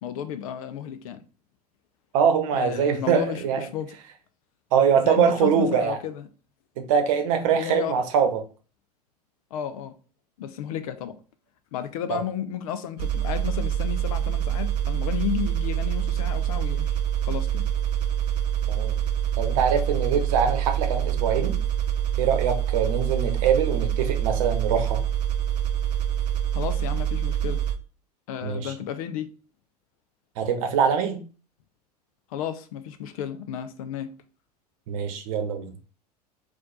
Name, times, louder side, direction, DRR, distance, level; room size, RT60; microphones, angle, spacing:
voice 1, 0.0-1.2 2.5-3.9 5.0-6.3 7.5-7.9 9.5-9.9 10.4-11.2 11.7-17.0 17.2-17.7 26.5-27.6 28.3-29.3 32.3-34.1, left 9 dB, 60° left, 0.6 m, -32 dB
voice 2, 2.1-3.6 4.7-6.0 6.8-8.4 12.1-12.2 18.7-19.0 19.4-21.6 22.2-25.0 28.4-28.7 30.4-31.2 34.9-35.7, right 7 dB, 55° right, 0.9 m, -23 dB
sound 1, 13.0-27.8, right 10 dB, 75° right, 0.5 m, -26 dB
4.2 x 2.6 x 4.0 m
figure-of-eight pair, 80°, 21 cm